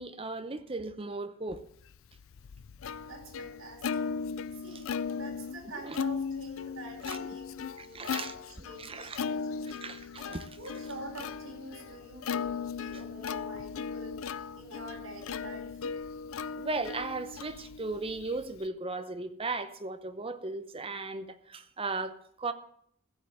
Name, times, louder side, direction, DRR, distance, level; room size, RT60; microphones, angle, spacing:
voice 1, 0.0-1.6 5.8-6.0 7.1-7.2 7.8-8.3 8.8-9.2 9.7-10.6 16.6-22.5, right 3 dB, 25° right, 0.8 m, -36 dB
Plucked string instrument, 1.9-18.7, left 6 dB, 70° left, 0.5 m, -37 dB
voice 2, 3.0-4.0 4.5-9.8 10.6-14.2 14.6-15.9, right 1 dB, 70° right, 4.2 m, -47 dB
15.5 x 5.4 x 7.6 m
head